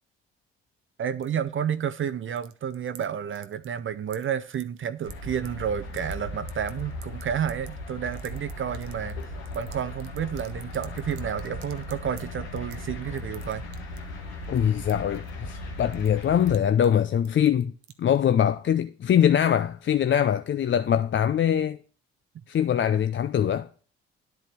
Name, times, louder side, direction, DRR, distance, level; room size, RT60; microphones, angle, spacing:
voice 1, 1.0-9.2 9.5-13.6, right 8 dB, 40° right, 0.6 m, -30 dB
sound 1, 1.2-2.0 2.3-3.1 3.4-3.8 4.1-5.5 5.8-6.1 6.5-12.2 12.6-12.8 13.2-14.1 14.4-15.7 15.9-16.6 16.8-17.0 17.2-18.2, right 13 dB, 85° right, 0.7 m, -49 dB
sound 2, 5.0-16.6, left 1 dB, 85° left, 1.3 m, -37 dB
voice 2, 14.5-17.7 18.0-21.8 22.5-23.7, left 9 dB, 40° left, 0.6 m, -23 dB
10.5 x 4.6 x 6.7 m
hypercardioid pair, 45°, 30 cm